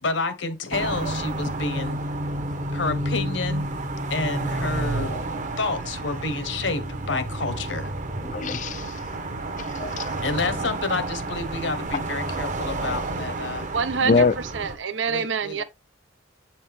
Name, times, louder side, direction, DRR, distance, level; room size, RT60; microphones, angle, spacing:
voice 1, 0.0-2.0 2.7-3.6 4.1-5.2 5.6-7.9 10.2-13.7 14.1-14.2 15.1-15.6, left 3 dB, 75° left, 1.3 m, -29 dB
sound 1, 0.7-14.8, right 2 dB, 40° right, 1.0 m, -30 dB
voice 2, 8.3-8.9 9.6-10.1 14.0-14.3, left 4 dB, 40° left, 0.5 m, -23 dB
voice 3, 13.7-15.6, right 5 dB, 75° right, 0.7 m, -26 dB
8.6 x 4.3 x 3.6 m
head